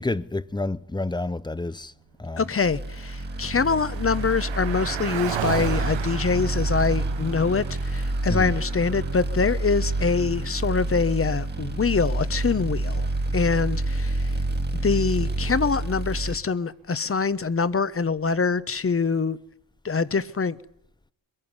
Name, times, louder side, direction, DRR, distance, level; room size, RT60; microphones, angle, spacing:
voice 1, 0.0-1.9 2.2-2.4 8.3-8.5, left 2 dB, 10° left, 0.7 m, -29 dB
Car passing by, 2.3-14.1, right 10 dB, 70° right, 1.1 m, -37 dB
voice 2, 2.4-13.1 13.3-14.3 14.8-19.4 19.8-20.6, left 5 dB, 30° left, 1.1 m, -24 dB
sound 1, 2.6-16.4, right 2 dB, 20° right, 1.8 m, -28 dB
22.0 x 14.5 x 9.7 m
cardioid pair, 80°, 46 cm